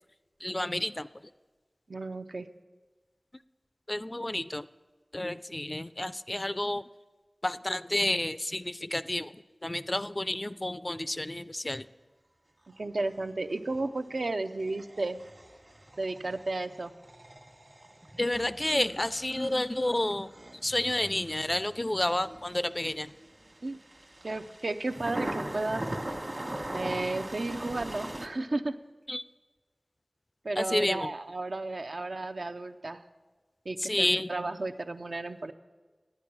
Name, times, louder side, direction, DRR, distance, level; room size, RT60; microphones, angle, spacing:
voice 1, 0.4-1.1 3.9-4.7 5.1-6.8 7.4-11.9 18.2-20.3 20.6-23.1 29.1-29.2 30.6-31.1 33.8-34.3, left 1 dB, 30° left, 15 dB, 0.3 m, -30 dB
voice 2, 1.9-2.5 12.8-15.2 16.0-16.9 23.6-23.8 24.2-25.8 26.7-28.8 30.4-33.0 33.7-35.5, right 2 dB, 75° right, 8 dB, 0.5 m, -33 dB
sound 1, 13.5-28.3, right 1 dB, 45° right, 1.2 m, -41 dB
10.0 x 9.4 x 6.0 m, 1.3 s
wide cardioid pair, 55°, 0 cm